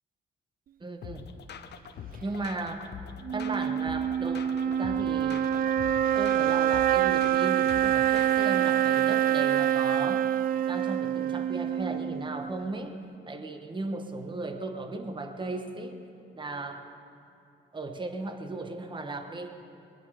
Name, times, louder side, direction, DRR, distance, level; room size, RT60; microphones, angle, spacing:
voice 1, 0.8-1.3 2.2-2.9 3.3-5.5 6.2-10.3 10.7-13.0 13.3-16.0 16.4-16.9 17.7-19.5, right 2 dB, 25° right, 5 dB, 1.3 m, -36 dB
sound 1, 1.0-8.6, left 7 dB, 60° left, 1.0 m, -44 dB
sound 2, 3.2-12.7, right 10 dB, 45° right, 0.4 m, -26 dB
22.0 x 11.0 x 5.0 m, 2.7 s
cardioid pair, 90°, 20 cm